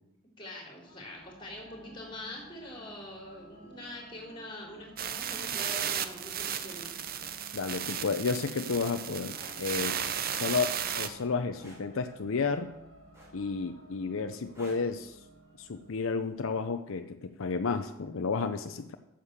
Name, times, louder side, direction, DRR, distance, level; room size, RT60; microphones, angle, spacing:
voice 1, 0.4-7.0, left 1 dB, 25° left, -1 dB, 3.6 m, -44 dB
sound 1, 0.9-17.1, right 1 dB, 85° right, 4.4 m, -55 dB
sound 2, 5.0-11.1, right 8 dB, 45° right, 0.7 m, -34 dB
voice 2, 7.5-10.0 10.3-12.7 13.3-15.2 15.6-18.9, left 4 dB, 75° left, 7 dB, 0.6 m, -32 dB
sound 3, 9.3-9.6 11.6-11.9 13.1-13.6 14.5-14.9 16.3-16.5, right 1 dB, 15° right, 3.9 m, -50 dB
9.7 x 7.5 x 6.7 m, 0.87 s
head